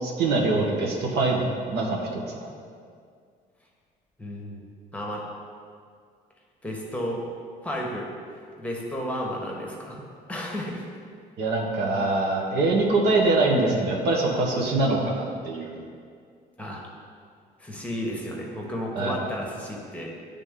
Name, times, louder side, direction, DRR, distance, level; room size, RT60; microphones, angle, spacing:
voice 1, 0.0-2.5 11.4-15.9 18.9-19.2, right 2 dB, 80° right, -1 dB, 1.1 m, -24 dB
voice 2, 4.2-5.2 6.6-7.2 7.6-10.0 10.3-10.8 16.6-16.8 17.6-20.1, equal, 10° left, -2 dB, 1.1 m, -33 dB
9.6 x 3.5 x 3.7 m, 2.2 s
cardioid pair, 110°, 17 cm